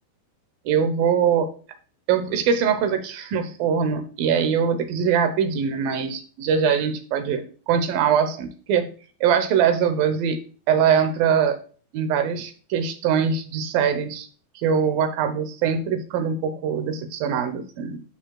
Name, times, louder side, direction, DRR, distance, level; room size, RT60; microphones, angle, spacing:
voice 1, 0.7-1.5 2.1-8.9 9.2-10.4 10.7-11.6 11.9-14.3 14.6-18.0, right 7 dB, 75° right, 8 dB, 2.6 m, -22 dB
11.0 x 5.6 x 2.3 m, 0.39 s
omnidirectional pair, 4.4 m